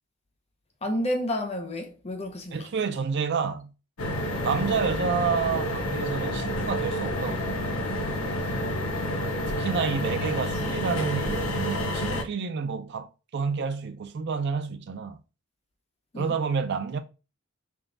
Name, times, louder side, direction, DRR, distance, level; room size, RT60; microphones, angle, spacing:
voice 1, 0.8-2.7 16.1-16.3, left 1 dB, 30° left, 0.7 m, -30 dB
voice 2, 2.5-3.7 4.4-7.5 9.6-15.2 16.2-17.0, right 5 dB, 55° right, 0.4 m, -29 dB
sound 1, 4.0-12.2, left 1 dB, 90° left, 0.7 m, -29 dB
3.6 x 2.3 x 3.8 m
head